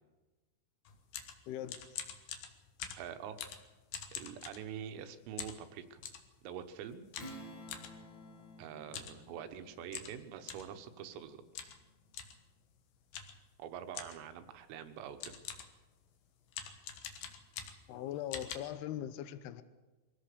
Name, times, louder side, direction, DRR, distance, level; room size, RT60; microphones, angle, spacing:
sound 1, 0.8-5.0 5.4-6.3 7.1-7.9 8.8-9.2 9.5-9.6 9.9-10.7 11.5-11.8 12.1-12.4 13.1-13.4 13.9-14.3 14.9-15.0 15.2-15.8 16.5-18.0 18.3-18.6, left 8 dB, 65° left, 2.5 m, -45 dB
voice 1, 1.5-1.8 17.9-19.6, left 11 dB, 80° left, 12 dB, 2.3 m, -40 dB
voice 2, 3.0-3.4 4.1-6.0 6.4-7.1 8.6-11.4 11.6-11.7 13.6-15.4, right 9 dB, 85° right, 9 dB, 3.9 m, -45 dB
Strum, 7.2-12.1, equal, 35° left, 2.0 m, -53 dB
24.0 x 16.5 x 6.8 m, 1.2 s
omnidirectional pair, 5.9 m